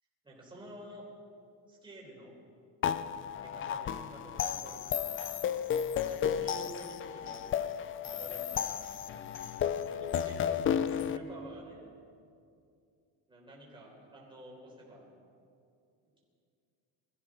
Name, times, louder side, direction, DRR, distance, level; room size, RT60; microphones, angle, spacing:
voice 1, 0.2-1.1 1.7-2.3 3.4-5.4 6.1-8.9 9.8-11.8 13.3-15.1 16.0-16.2, equal, 10° right, -4 dB, 4.2 m, -50 dB
sound 1, 2.8-11.2, left 8 dB, 35° left, 0.4 m, -33 dB
22.5 x 15.0 x 3.8 m, 2.4 s
cardioid pair, 160°, 41 cm